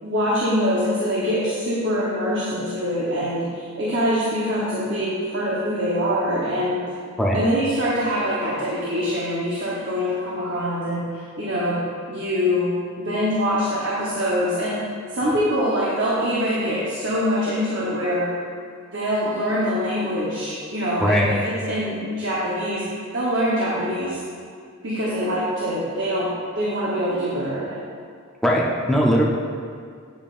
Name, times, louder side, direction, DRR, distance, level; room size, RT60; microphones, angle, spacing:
voice 1, 0.0-6.8 7.3-11.1 11.4-11.8 12.1-14.8 15.1-18.3 18.9-24.2 24.8-27.8, equal, 55° right, -7 dB, 0.9 m, -24 dB
voice 2, 28.4-29.2, equal, ahead, -4 dB, 0.6 m, -19 dB
8.7 x 5.5 x 2.5 m, 2.1 s
head